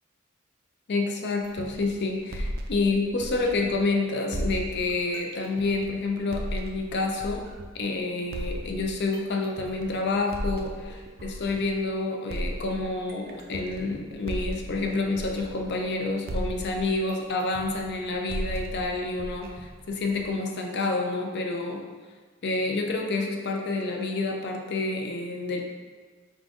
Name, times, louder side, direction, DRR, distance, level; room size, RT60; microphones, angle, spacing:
voice 1, 0.9-7.4 7.7-21.8 22.4-25.6, left 3 dB, 55° left, 2 dB, 0.6 m, -28 dB
sound 1, 1.4-3.9 4.3-7.8 8.3-11.9 12.3-16.0 16.3-20.4, right 1 dB, 45° right, 0.4 m, -36 dB
3.8 x 2.5 x 4.7 m, 1.4 s
head